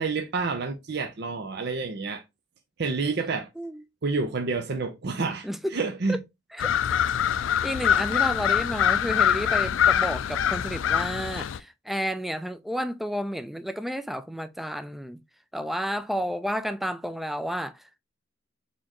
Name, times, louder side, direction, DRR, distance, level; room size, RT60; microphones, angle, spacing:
voice 1, 0.0-2.2 2.8-3.5 4.0-6.2, right 4 dB, 60° right, 0.7 m, -29 dB
sound 1, 6.6-11.6, left 9 dB, 80° left, 0.3 m, -24 dB
voice 2, 7.6-15.2 15.5-18.0, equal, ahead, 0.3 m, -31 dB
4.2 x 3.7 x 3.0 m
head